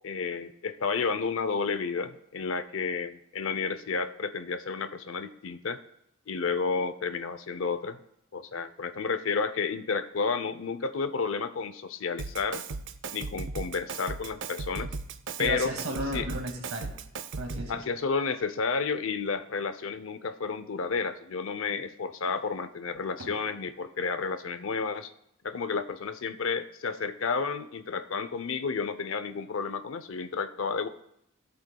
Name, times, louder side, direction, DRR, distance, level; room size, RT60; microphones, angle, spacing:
voice 1, 0.0-5.8 6.3-8.0 8.3-12.6 13.1-14.9 15.4-15.7 16.1-16.3 17.7-25.1 25.4-30.9, left 5 dB, 70° left, 11 dB, 0.6 m, -31 dB
Drum kit, 12.2-17.8, right 4 dB, 60° right, 0.5 m, -37 dB
voice 2, 15.4-16.9 17.3-17.8 23.2-23.3, right 1 dB, 90° right, 2 dB, 2.1 m, -34 dB
17.0 x 7.9 x 2.3 m, 0.76 s
head